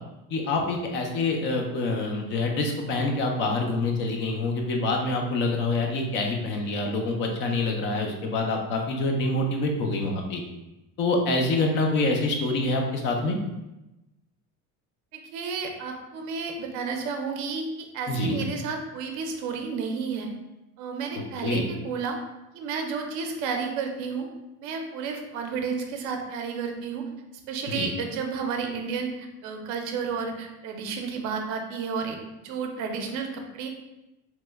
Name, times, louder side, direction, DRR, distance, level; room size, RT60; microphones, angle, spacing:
voice 1, 0.3-10.4 11.0-13.4 18.1-18.4 21.4-21.6 27.7-27.9, left 2 dB, 35° left, 2 dB, 0.4 m, -26 dB
voice 2, 15.1-20.3 20.8-22.2 22.5-24.3 24.6-27.0 27.3-33.7, right 5 dB, 55° right, 3 dB, 0.5 m, -32 dB
2.9 x 2.1 x 3.3 m, 0.96 s
cardioid pair, 175°, 35 cm